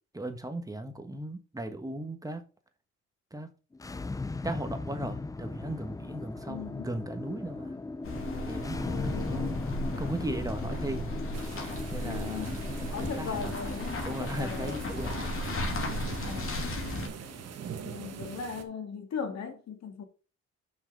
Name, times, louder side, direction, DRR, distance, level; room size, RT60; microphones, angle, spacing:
voice 1, 0.1-2.4 3.3-3.5 4.4-7.8 8.4-9.6 10.0-11.1 11.9-13.5 14.0-15.2 15.6-15.7, right 1 dB, 10° right, 1.3 m, -37 dB
sound 1, 3.7-18.7, left 3 dB, 10° left, 0.4 m, -39 dB
voice 2, 6.5-6.9 8.8-9.6 12.0-14.9 16.2-16.7 17.8-20.0, left 6 dB, 60° left, 2.3 m, -38 dB
sound 2, 8.0-17.1, left 1 dB, 45° left, 2.7 m, -35 dB
sound 3, 11.3-18.6, right 8 dB, 55° right, 1.3 m, -43 dB
6.5 x 5.9 x 4.9 m
cardioid pair, 90°, 30 cm